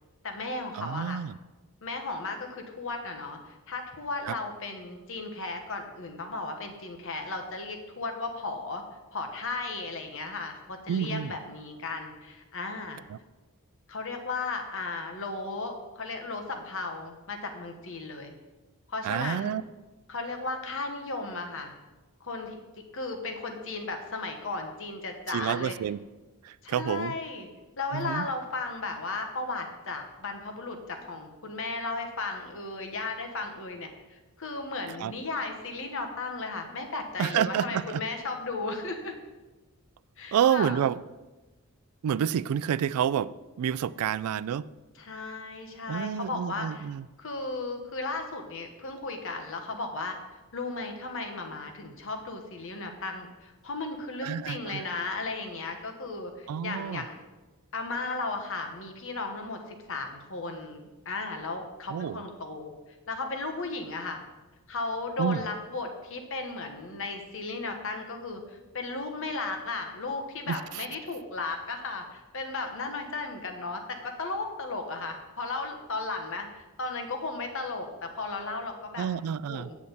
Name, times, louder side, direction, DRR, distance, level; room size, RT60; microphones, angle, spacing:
voice 1, 0.2-1.2 1.8-8.8 9.1-13.0 13.9-18.3 18.9-19.5 20.1-21.7 22.2-22.6 22.9-25.7 26.6-27.5 27.8-39.1 40.2-40.8 44.9-46.9 47.2-50.2 50.5-57.2 57.7-62.7 63.1-64.2 64.7-79.1 79.5-79.8, left 3 dB, 60° left, 5 dB, 1.2 m, -35 dB
voice 2, 0.7-1.4 4.2-4.3 10.9-11.3 13.1-13.2 19.0-19.6 25.3-26.0 26.4-27.1 27.9-28.3 35.0-35.1 37.2-38.0 40.3-41.0 42.0-43.3 43.6-44.7 45.9-47.1 54.2-54.8 56.5-57.0 61.9-62.2 65.2-65.5 70.5-70.8 79.0-79.7, right 8 dB, 75° right, 18 dB, 0.3 m, -29 dB
8.5 x 8.4 x 4.1 m, 1.2 s
head